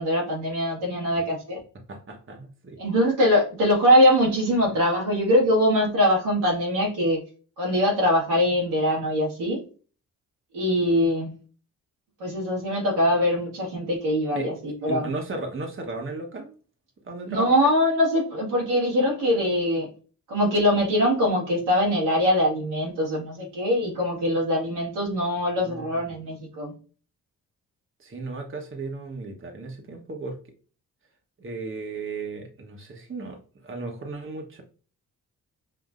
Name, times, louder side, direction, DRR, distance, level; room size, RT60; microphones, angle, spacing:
voice 1, 0.0-1.6 2.8-7.2 7.6-9.6 10.5-11.4 12.2-15.1 17.3-19.9 20.3-26.7, equal, 85° right, -4 dB, 1.8 m, -22 dB
voice 2, 1.9-2.8 14.3-14.5 14.9-16.5 17.0-17.6 25.6-26.2 28.0-30.4 31.4-34.6, right 3 dB, 30° right, 3 dB, 1.1 m, -35 dB
5.8 x 2.6 x 2.5 m, 0.39 s
hypercardioid pair, 45°, 39 cm